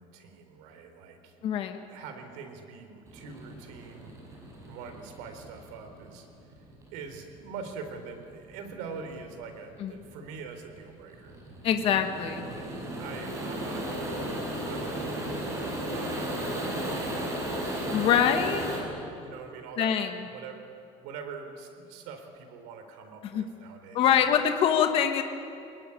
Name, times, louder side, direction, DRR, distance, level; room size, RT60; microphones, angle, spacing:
voice 1, 0.0-1.6 1.9-6.3 6.9-11.4 11.8-18.2 18.5-20.0 20.3-24.5, right 5 dB, 85° right, 6 dB, 4.0 m, -44 dB
voice 2, 1.4-1.8 9.8-9.9 11.6-12.5 17.9-18.7 19.8-20.1 23.2-23.4 23.9-25.2, left 9 dB, 40° left, 6 dB, 1.5 m, -24 dB
sound 1, 3.1-18.8, right 1 dB, 20° right, 5.6 m, -35 dB
22.5 x 21.0 x 10.0 m, 2.5 s
cardioid pair, 175°, 14 cm